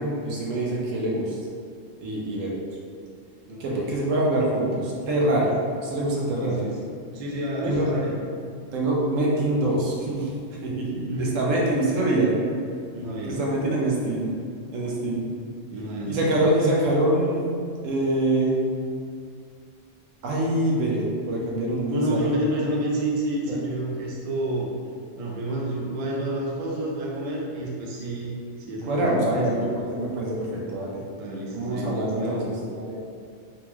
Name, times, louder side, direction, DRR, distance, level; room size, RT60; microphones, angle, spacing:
voice 1, 0.0-1.4 2.0-2.5 3.6-6.6 7.6-7.9 8.7-10.3 10.6-12.4 13.2-14.3 14.7-15.3 16.1-17.4 17.8-18.5 20.2-22.3 23.5-23.6 28.9-31.0 31.5-33.0, right 1 dB, 85° right, -3 dB, 1.1 m, -25 dB
voice 2, 3.5-3.9 6.4-6.8 7.1-8.2 11.1-11.3 12.9-13.4 15.7-16.4 21.9-24.7 25.2-28.3 28.7-29.6 31.1-32.5, right 1 dB, 50° right, -3 dB, 0.4 m, -29 dB
3.9 x 2.3 x 3.0 m, 2.3 s
omnidirectional pair, 1.3 m